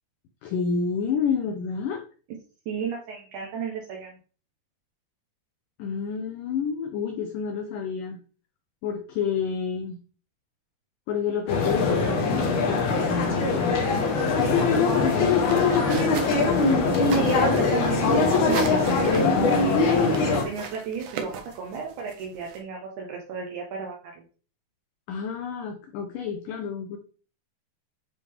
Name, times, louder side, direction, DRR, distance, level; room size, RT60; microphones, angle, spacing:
voice 1, 0.4-2.0 5.8-8.2 8.8-10.0 11.1-13.8 14.2-16.4 25.1-27.0, left 6 dB, 90° left, 5 dB, 1.9 m, -30 dB
voice 2, 2.6-4.2 17.1-24.2, right 6 dB, 90° right, 0 dB, 1.7 m, -34 dB
sound 1, 11.5-20.4, left 4 dB, 65° left, 2.2 m, -22 dB
sound 2, 14.4-22.6, right 7 dB, 70° right, 2.4 m, -39 dB
9.7 x 3.5 x 3.3 m, 0.39 s
omnidirectional pair, 4.8 m